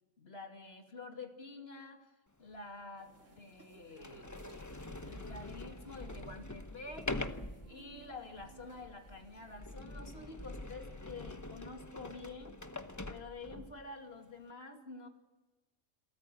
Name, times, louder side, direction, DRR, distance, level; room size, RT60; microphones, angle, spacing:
voice 1, 0.2-2.1 2.4-4.2 4.5-4.6 5.1-7.1 7.7-12.6 13.1-15.1, left 3 dB, 45° left, 4 dB, 2.8 m, -48 dB
Sliding door, 2.5-2.6 3.4-3.5 3.9-13.8, left 2 dB, 15° left, 0.8 m, -45 dB
sound 1, 3.0-9.6, right 2 dB, 55° right, 3.2 m, -61 dB
sound 2, 7.1-9.9, right 5 dB, 35° right, 3.0 m, -59 dB
28.0 x 14.0 x 7.8 m, 1.2 s
omnidirectional pair, 1.5 m